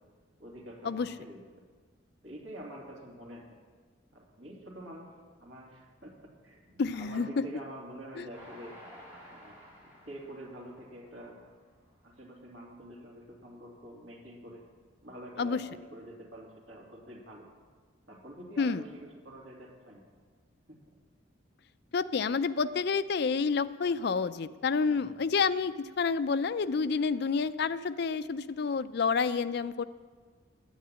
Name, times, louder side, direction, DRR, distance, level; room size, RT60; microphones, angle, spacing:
voice 1, 0.4-1.4 2.2-3.5 4.1-5.1 5.4-8.8 9.3-9.6 9.8-11.4 12.0-14.6 15.0-17.5 18.1-20.0 20.7-20.9 24.8-25.2, right 1 dB, 75° right, -2 dB, 2.8 m, -47 dB
voice 2, 6.8-7.4 8.2-8.3 15.4-15.6 18.6-18.8 21.9-29.8, left 5 dB, 55° left, 13 dB, 0.4 m, -29 dB
Train, 8.3-11.8 12.3-12.4 12.7-12.8, equal, 10° right, 3.2 m, -53 dB
10.5 x 8.7 x 8.8 m, 1.5 s
head